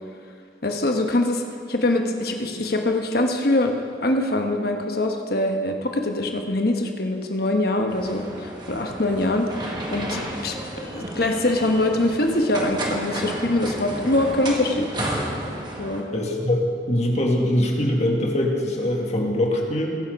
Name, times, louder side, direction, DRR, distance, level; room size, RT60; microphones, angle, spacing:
voice 1, 0.6-1.4 1.7-14.9 15.8-16.0, left 1 dB, 55° left, 4 dB, 1.2 m, -23 dB
sound 1, 7.9-16.0, right 1 dB, 25° right, 1.4 m, -32 dB
voice 2, 16.1-20.0, left 1 dB, 35° left, 0 dB, 1.7 m, -22 dB
21.0 x 7.1 x 5.4 m, 2.5 s
head